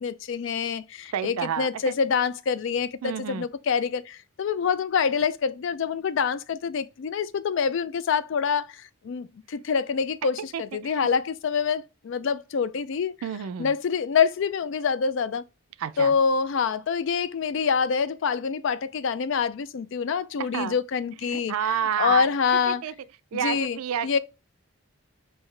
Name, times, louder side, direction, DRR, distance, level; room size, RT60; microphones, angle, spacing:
voice 1, 0.0-13.2 13.6-15.4 16.0-22.8 23.3-24.2, left 6 dB, 55° left, 0.3 m, -26 dB
voice 2, 1.1-1.9 3.0-3.5 10.4-11.1 13.2-13.7 15.8-16.2 20.4-20.8 21.3-22.3 22.7-22.9 23.3-24.2, right 8 dB, 85° right, 0.4 m, -30 dB
5.6 x 2.7 x 3.2 m
head